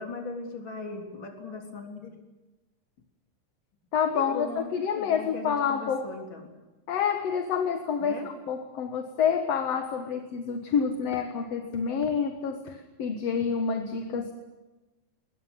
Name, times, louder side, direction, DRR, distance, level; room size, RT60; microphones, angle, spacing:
voice 1, 0.0-2.1 4.1-4.7 4.9-6.4 8.0-8.3, left 3 dB, 35° left, 3 dB, 4.1 m, -38 dB
voice 2, 3.9-6.1 6.9-14.3, left 6 dB, 55° left, 6 dB, 2.2 m, -28 dB
21.5 x 21.0 x 9.9 m, 1.1 s
omnidirectional pair, 4.0 m